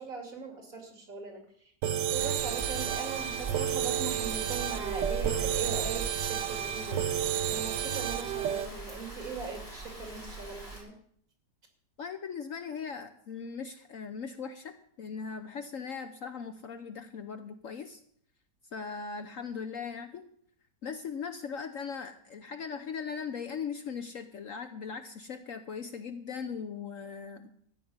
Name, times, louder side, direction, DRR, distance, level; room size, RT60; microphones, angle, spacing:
voice 1, 0.0-1.7 2.1-7.1 7.5-10.9, right 4 dB, 50° right, 2 dB, 3.0 m, -40 dB
sound 1, 1.8-8.7, right 10 dB, 90° right, 1.4 m, -31 dB
Rain, 2.1-10.8, right 3 dB, 10° right, 5.4 m, -41 dB
voice 2, 12.0-18.0 18.7-20.3 20.8-27.5, left 6 dB, 60° left, 9 dB, 1.0 m, -39 dB
14.0 x 6.0 x 9.4 m, 0.64 s
omnidirectional pair, 1.9 m